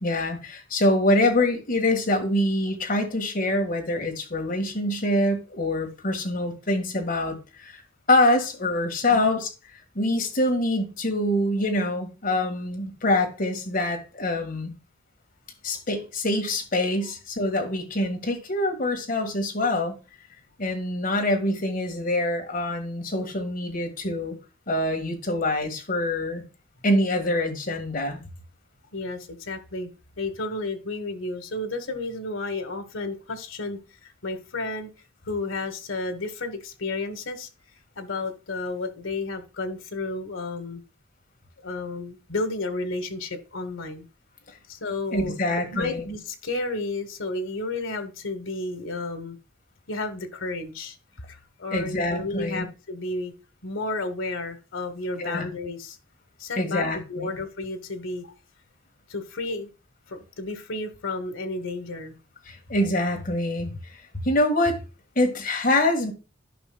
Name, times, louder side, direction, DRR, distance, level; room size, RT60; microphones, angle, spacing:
voice 1, 0.0-7.8 8.1-9.5 9.9-14.7 15.6-19.9 20.6-24.3 24.7-26.4 26.8-28.2 45.1-46.0 51.7-52.7 55.2-55.5 56.6-57.4 62.5-64.8 65.1-66.1, left 1 dB, 45° left, 1.6 m, -25 dB
voice 2, 28.9-29.9 30.2-34.9 35.3-37.5 38.0-40.8 41.6-44.0 44.7-45.4 45.7-49.4 49.9-51.0 51.3-53.3 53.6-56.0 56.4-58.3 59.1-59.7 60.1-62.1, left 2 dB, 90° left, 1.3 m, -32 dB
11.0 x 5.5 x 2.2 m
head